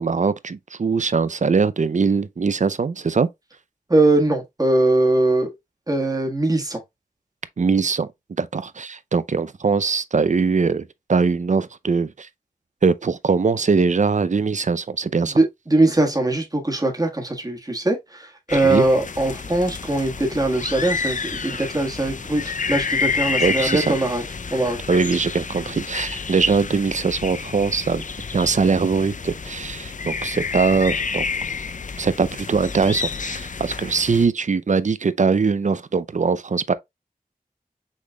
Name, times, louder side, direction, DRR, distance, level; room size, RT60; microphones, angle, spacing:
voice 1, 0.0-3.3 7.6-8.1 8.4-12.3 12.8-15.4 18.6-18.8 23.4-23.9 24.9-28.0 28.3-31.2 32.0-36.7, right 5 dB, 55° right, 0.4 m, -21 dB
voice 2, 3.9-5.5 5.9-6.8 15.3-24.2 24.5-24.8, right 2 dB, 25° right, 1.5 m, -21 dB
sound 1, 18.5-34.3, left 5 dB, 60° left, 0.5 m, -29 dB
6.3 x 3.7 x 2.2 m
wide cardioid pair, 65°, 15 cm